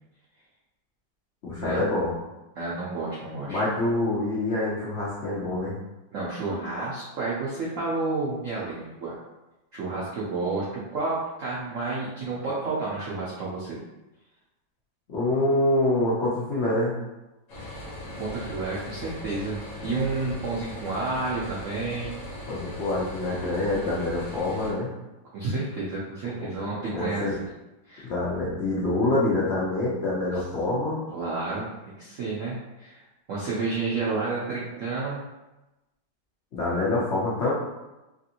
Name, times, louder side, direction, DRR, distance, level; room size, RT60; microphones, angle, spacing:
voice 1, 1.4-2.1 3.5-5.8 15.1-16.9 22.5-24.9 26.4-26.5 26.9-27.3 28.0-31.0 36.5-37.5, left 2 dB, 85° left, -7 dB, 0.6 m, -26 dB
voice 2, 2.5-3.6 6.1-9.2 9.7-10.7 10.9-13.8 18.2-22.1 25.3-27.3 27.9-28.1 31.1-33.0 33.3-35.2, right 3 dB, 80° right, -7 dB, 0.7 m, -30 dB
sound 1, 17.5-24.7, left 1 dB, 55° left, 1.2 m, -39 dB
3.1 x 2.8 x 2.5 m, 1.0 s
omnidirectional pair, 2.1 m